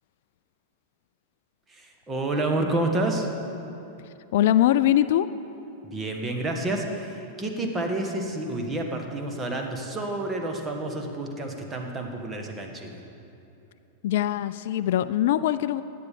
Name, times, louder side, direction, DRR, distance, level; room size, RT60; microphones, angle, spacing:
voice 1, 1.7-3.3 5.8-13.0, right 2 dB, 20° right, 2 dB, 1.6 m, -29 dB
voice 2, 4.3-5.3 14.0-15.8, left 12 dB, 60° left, 14 dB, 0.3 m, -22 dB
16.5 x 10.5 x 3.8 m, 3.0 s
hypercardioid pair, 95°, 0 cm